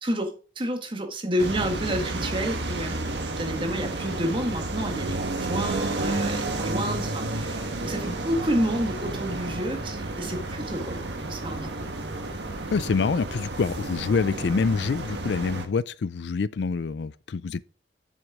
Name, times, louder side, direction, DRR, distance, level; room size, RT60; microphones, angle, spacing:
voice 1, 0.0-11.7, equal, 30° right, 1.6 m, -30 dB
sound 1, 1.4-15.6, right 2 dB, 80° right, 1.5 m, -31 dB
voice 2, 12.7-17.6, left 5 dB, 75° left, 0.4 m, -26 dB
7.1 x 6.5 x 4.9 m
head